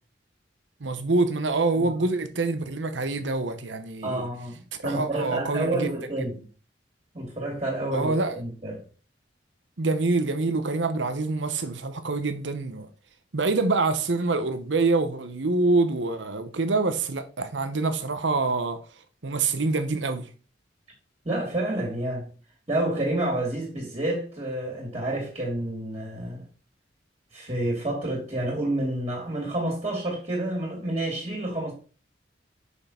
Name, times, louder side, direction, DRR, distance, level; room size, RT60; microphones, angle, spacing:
voice 1, 0.8-4.3 4.8-5.9 7.9-8.4 9.8-12.9 13.3-18.8 19.2-20.3, right 3 dB, 85° right, 1.0 m, -26 dB
voice 2, 4.0-6.4 7.1-8.8 21.2-22.3 22.7-26.4 27.3-31.7, right 1 dB, 30° right, 2.7 m, -29 dB
6.3 x 5.6 x 4.4 m
head